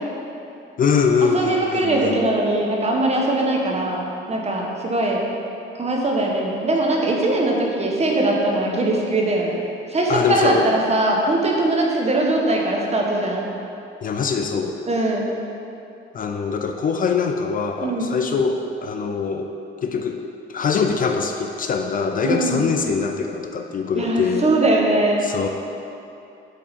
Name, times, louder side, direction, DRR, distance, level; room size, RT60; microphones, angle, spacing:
voice 1, 0.8-2.2 10.1-10.7 14.0-14.8 16.1-19.5 19.8-20.2 20.5-24.5 25.2-25.5, left 5 dB, 45° left, 5 dB, 0.4 m, -23 dB
voice 2, 1.3-4.0 4.3-5.2 5.8-9.6 9.9-13.5 14.9-15.3 17.8-18.1 22.2-22.6 23.9-25.2, right 2 dB, 35° right, -1 dB, 1.1 m, -21 dB
8.1 x 3.7 x 4.3 m, 2.8 s
cardioid pair, 90°, 20 cm